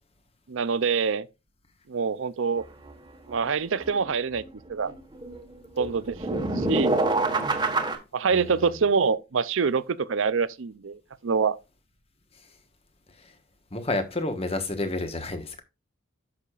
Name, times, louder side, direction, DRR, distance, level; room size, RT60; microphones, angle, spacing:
voice 1, 0.5-1.3 1.9-2.6 3.3-4.4 4.7-4.9 5.8-7.0 8.1-11.6, right 5 dB, 65° right, 0.5 m, -25 dB
sound 1, 2.6-2.7 2.9-3.0 3.3-3.4 3.8-4.9 5.2-8.0, right 2 dB, 20° right, 1.4 m, -26 dB
voice 2, 8.3-8.7 13.2-13.3 13.7-15.6, left 2 dB, 30° left, 1.3 m, -30 dB
10.5 x 6.5 x 2.5 m
head